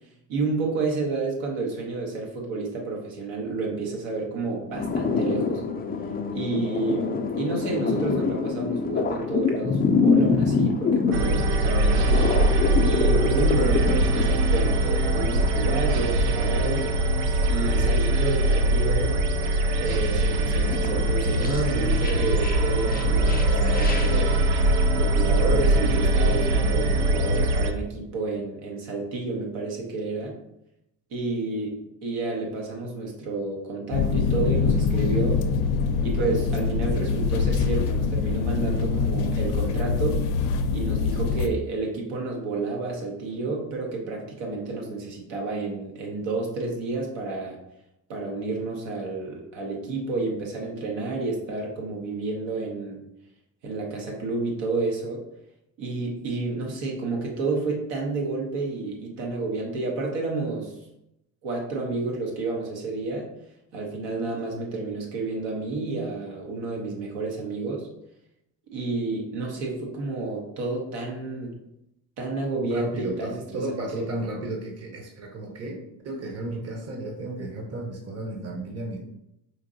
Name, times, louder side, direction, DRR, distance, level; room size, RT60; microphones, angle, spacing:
voice 1, 0.3-5.6 6.3-12.1 12.8-16.9 17.5-19.2 19.8-24.4 24.9-30.4 31.1-35.4 36.0-40.2 40.7-47.6 48.1-53.0 53.6-55.2 55.8-60.8 61.4-63.3 63.7-67.9 68.7-71.6 72.2-74.1, right 3 dB, 70° right, 0 dB, 1.0 m, -30 dB
sound 1, 4.7-14.4 14.7-15.4 17.3-19.0 19.4-24.2, left 5 dB, 20° left, 0.4 m, -26 dB
sound 2, 11.1-27.7, right 1 dB, 90° right, 0.6 m, -22 dB
sound 3, 33.9-41.5, left 5 dB, 85° left, 0.5 m, -24 dB
voice 2, 72.6-79.1, right 2 dB, 30° right, 1 dB, 0.9 m, -33 dB
4.4 x 2.7 x 2.7 m, 0.83 s
supercardioid pair, 75°, 46 cm